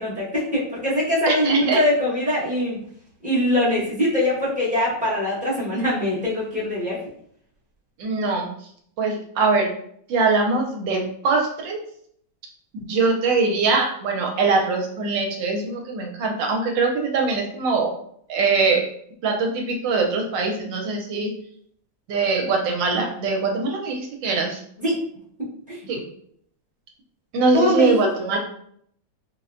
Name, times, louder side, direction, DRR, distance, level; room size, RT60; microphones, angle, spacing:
voice 1, 0.0-2.8 3.2-7.0 24.8-25.0 25.4-25.8 27.5-27.9 28.2-28.3, left 1 dB, 5° right, -9 dB, 0.6 m, -22 dB
voice 2, 1.3-1.8 8.0-8.5 9.0-9.7 10.1-11.8 12.8-17.9 18.3-18.9 19.2-21.3 22.1-24.6 25.9-26.0 27.3-28.4, right 4 dB, 75° right, 2 dB, 1.2 m, -22 dB
4.1 x 2.1 x 2.4 m, 0.66 s
omnidirectional pair, 2.1 m